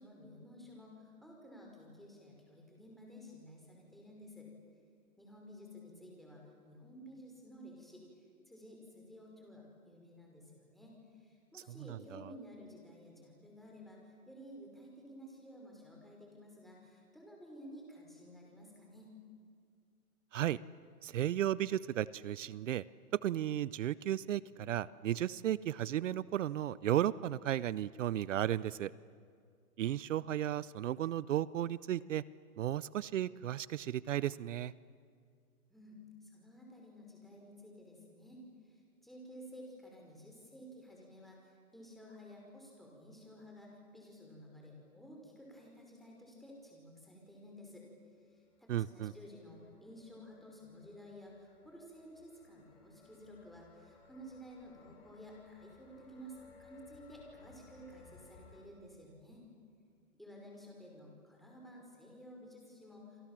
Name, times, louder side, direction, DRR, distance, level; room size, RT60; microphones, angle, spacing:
voice 1, 0.0-4.5 5.2-19.1 35.7-47.9 48.3-59.4 60.2-63.3, equal, ahead, -1 dB, 5.5 m, -53 dB
voice 2, 11.8-12.3 20.3-20.6 21.0-22.8 23.1-28.9 29.8-32.2 32.6-34.7 48.7-49.1, right 12 dB, 55° right, 20 dB, 0.7 m, -34 dB
sound 1, 48.1-58.6, left 4 dB, 35° left, 7.8 m, -62 dB
28.0 x 27.5 x 7.6 m, 2.2 s
hypercardioid pair, 150°, 45 cm